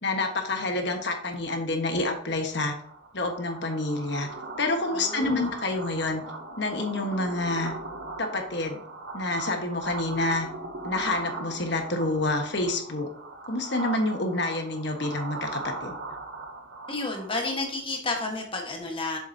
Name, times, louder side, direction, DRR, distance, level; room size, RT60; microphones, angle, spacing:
voice 1, 0.0-2.7 3.1-4.3 4.6-6.2 6.6-7.7 8.2-8.8 9.1-10.5 10.8-13.1 13.5-15.9, left 2 dB, 55° left, 4 dB, 1.3 m, -28 dB
sound 1, 2.5-17.8, right 2 dB, 65° right, 0.9 m, -39 dB
voice 2, 4.9-5.5 16.9-19.2, left 2 dB, 25° left, 1 dB, 1.4 m, -31 dB
7.6 x 7.2 x 2.8 m, 0.67 s
head